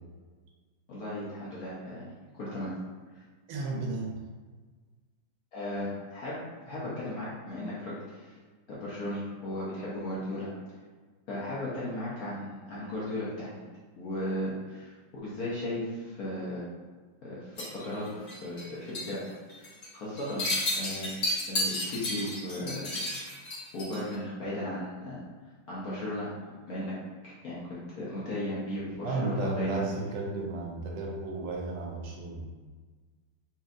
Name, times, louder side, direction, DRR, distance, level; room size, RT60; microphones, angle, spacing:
voice 1, 0.9-2.7 5.5-6.4 6.7-8.4 8.7-10.5 11.3-13.6 14.0-14.9 15.2-16.7 17.2-19.2 19.5-20.5 20.8-21.1 21.5-22.9 23.7-25.2 25.7-26.4 26.7-27.0 27.2-29.8, left 1 dB, 60° left, -8 dB, 1.0 m, -36 dB
voice 2, 3.5-4.2 29.0-32.5, right 2 dB, 80° right, -1 dB, 1.6 m, -33 dB
sound 1, 17.6-18.7 18.9-19.2 19.5-19.9 20.2-24.1, left 1 dB, 45° left, 1.4 m, -32 dB
4.1 x 3.3 x 2.5 m, 1.4 s
omnidirectional pair, 2.3 m